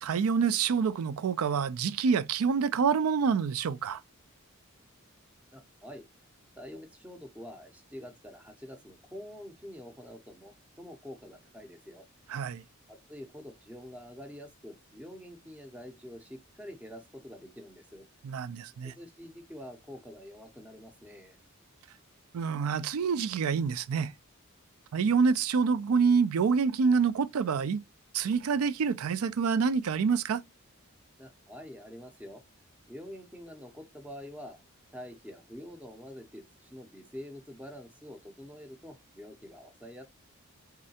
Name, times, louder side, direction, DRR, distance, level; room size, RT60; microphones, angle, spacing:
voice 1, 0.0-4.0 12.3-12.6 18.2-18.9 22.3-24.1 24.9-27.8 28.1-30.4, right 5 dB, 85° right, 0.4 m, -27 dB
voice 2, 5.5-6.0 6.6-12.1 12.9-18.1 18.8-21.4 31.2-32.4 32.9-34.6 34.9-40.0, equal, 5° right, 0.5 m, -46 dB
3.7 x 3.2 x 2.7 m
head